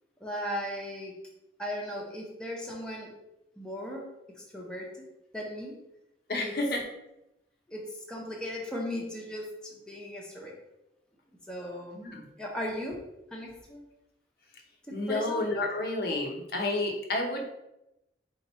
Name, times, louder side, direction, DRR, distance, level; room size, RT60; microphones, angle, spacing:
voice 1, 0.2-1.1 1.6-3.1 3.6-4.1 4.4-5.0 5.3-5.8 6.3-6.5 7.7-10.6 11.5-12.0 12.4-13.0 13.3-13.8 14.9-15.4, equal, 5° left, -3 dB, 0.7 m, -37 dB
voice 2, 6.3-6.8 11.9-12.2 14.9-17.5, left 2 dB, 60° left, 1 dB, 0.7 m, -30 dB
3.8 x 2.9 x 4.3 m, 0.90 s
head